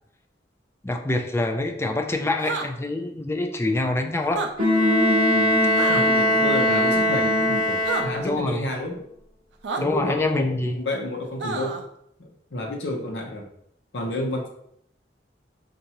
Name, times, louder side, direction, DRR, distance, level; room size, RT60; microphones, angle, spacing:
voice 1, 0.8-4.4 8.2-8.7 9.8-10.8, left 2 dB, 15° left, 4 dB, 0.4 m, -25 dB
sound 1, 2.4-2.7 4.2-4.5 5.8-6.0 7.8-8.0 9.6-9.8 11.4-11.8, right 4 dB, 80° right, 0.5 m, -28 dB
Bowed string instrument, 4.6-8.5, left 1 dB, 30° left, 1.1 m, -22 dB
sound 2, 4.6-7.8, left 1 dB, 30° right, 0.8 m, -24 dB
voice 2, 5.9-9.0 9.8-11.8 12.2-13.5 13.9-14.5, left 1 dB, 75° left, 2 dB, 0.8 m, -30 dB
5.4 x 2.6 x 2.9 m, 0.72 s
head